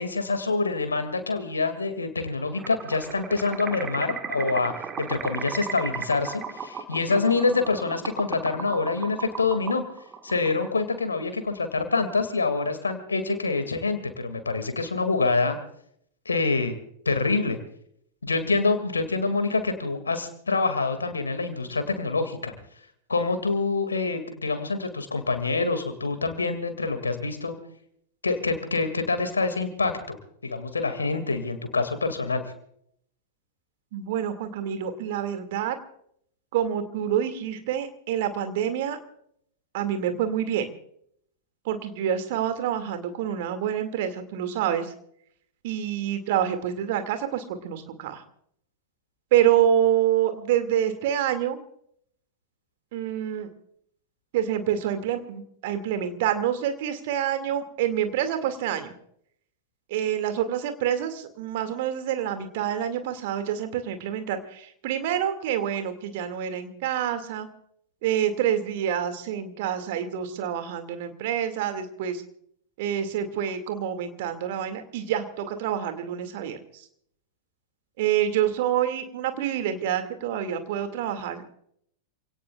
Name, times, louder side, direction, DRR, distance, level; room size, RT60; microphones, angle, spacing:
voice 1, 0.0-9.8 10.2-15.6 16.3-16.7 17.1-17.6 18.2-22.6 23.1-27.6 28.2-30.2 30.4-32.4, left 3 dB, 75° left, 9 dB, 2.3 m, -26 dB
sound 1, 2.6-11.0, right 6 dB, 25° right, 1.6 m, -36 dB
voice 2, 33.9-35.8 36.5-39.0 39.7-40.7 41.6-44.9 45.6-48.2 49.3-51.6 52.9-53.5 54.3-58.9 59.9-67.5 68.0-72.2 72.8-76.9 78.0-81.5, right 10 dB, 50° right, 8 dB, 2.3 m, -27 dB
28.0 x 17.5 x 2.4 m, 0.68 s
figure-of-eight pair, 90°, 0 cm